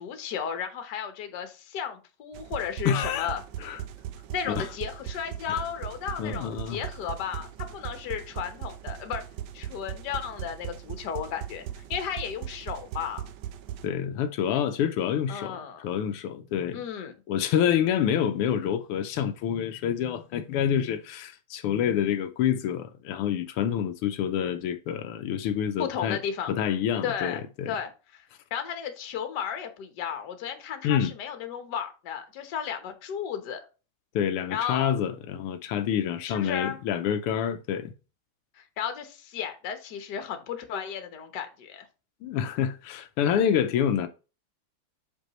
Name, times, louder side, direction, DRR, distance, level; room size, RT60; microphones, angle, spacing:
voice 1, 0.0-3.4 4.3-9.2 9.5-13.3 15.3-15.9 16.7-17.1 25.8-26.6 27.0-28.2 28.5-33.6 34.5-34.9 36.2-36.8 38.5-41.9, left 8 dB, 55° left, 1.5 m, -34 dB
sound 1, 2.3-13.9, right 10 dB, 70° right, 1.0 m, -39 dB
voice 2, 2.8-3.3 3.6-3.8 4.5-4.7 5.5-5.6 6.2-6.8 13.8-16.8 17.3-26.2 26.5-27.8 30.8-31.1 34.1-37.9 42.2-44.1, left 9 dB, 85° left, 1.6 m, -27 dB
6.2 x 5.3 x 3.0 m
omnidirectional pair, 2.4 m